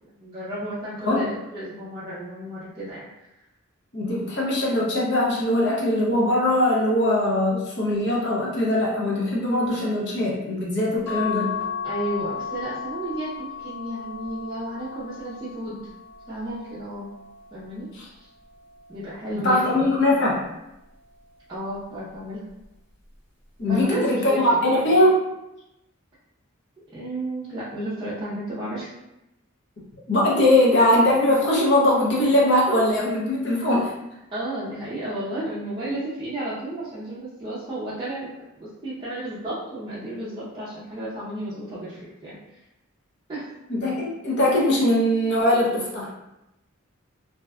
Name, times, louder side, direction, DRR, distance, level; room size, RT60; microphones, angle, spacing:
voice 1, 0.0-3.1 11.8-15.8 16.3-17.1 17.5-17.9 18.1-18.3 18.9-20.0 21.5-22.4 23.6-24.4 24.7-24.9 26.9-28.9 34.3-38.3 38.6-42.4 43.3-43.5, right 1 dB, 20° right, -12 dB, 0.5 m, -33 dB
voice 2, 3.9-11.6 19.3-20.4 23.6-25.2 30.1-33.9 43.7-46.1, left 1 dB, 55° left, -4 dB, 0.7 m, -21 dB
sound 1, 11.1-17.7 18.3-19.7 21.0-21.4 21.7-21.8, left 7 dB, 15° left, 0.9 m, -35 dB
2.7 x 2.2 x 2.3 m, 0.90 s
head